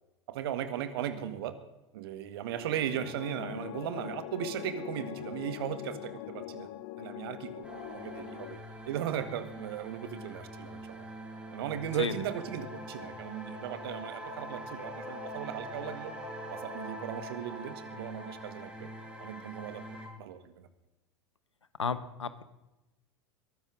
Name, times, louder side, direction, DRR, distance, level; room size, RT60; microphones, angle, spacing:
voice 1, 0.3-1.5 1.9-6.7 7.0-8.6 8.8-11.1 11.5-16.1 16.5-18.9 19.2-19.8 20.2-20.7, right 10 dB, 60° right, 12 dB, 1.6 m, -37 dB
sound 1, 2.5-8.6, left 14 dB, 45° left, 0.8 m, -43 dB
sound 2, 7.6-20.1, equal, 10° right, 7.5 m, -43 dB
voice 2, 21.8-22.4, left 5 dB, 80° left, 14 dB, 1.0 m, -32 dB
22.5 x 13.0 x 3.8 m, 1.0 s
figure-of-eight pair, 80°, 15 cm